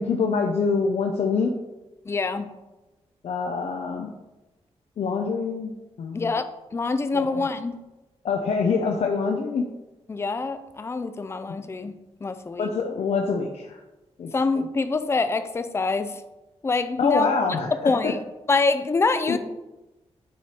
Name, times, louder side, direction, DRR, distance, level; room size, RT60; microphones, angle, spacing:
voice 1, 0.0-1.5 3.2-4.1 5.0-5.7 6.0-6.3 7.1-7.5 8.2-9.6 12.6-13.8 14.2-14.3 17.0-18.1 19.3-19.4, left 5 dB, 70° left, 2 dB, 0.7 m, -25 dB
voice 2, 2.1-2.5 6.1-7.8 10.1-12.7 14.3-16.2 16.6-17.3 17.8-18.2 18.5-19.4, left 3 dB, 25° left, 10 dB, 0.5 m, -25 dB
9.5 x 5.0 x 4.3 m, 1.0 s
wide cardioid pair, 155°, 11 cm